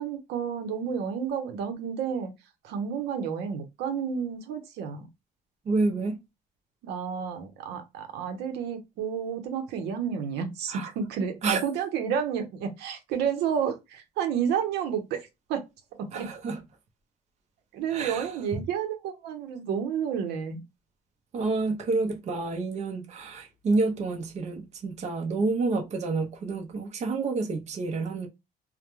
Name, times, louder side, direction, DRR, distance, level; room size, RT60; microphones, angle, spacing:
voice 1, 0.0-2.3 2.6-5.1 6.8-15.6 15.9-16.3 17.7-20.6, right 7 dB, 85° right, 0.7 m, -31 dB
voice 2, 5.7-6.2 10.7-10.9 11.4-11.6 16.1-16.6 17.9-18.3 21.3-28.3, right 3 dB, 40° right, 0.6 m, -28 dB
2.3 x 2.1 x 3.0 m
cardioid pair, 110°, 17 cm